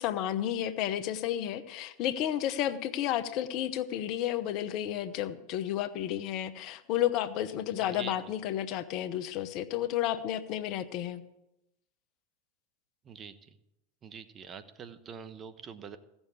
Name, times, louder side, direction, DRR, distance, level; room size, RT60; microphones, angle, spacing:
voice 1, 0.0-11.2, left 11 dB, 50° left, 13 dB, 0.9 m, -32 dB
voice 2, 7.8-8.1 13.0-13.3 14.0-16.0, right 7 dB, 30° right, 10 dB, 1.1 m, -44 dB
16.0 x 7.2 x 8.3 m, 0.90 s
hypercardioid pair, 90°, 0 cm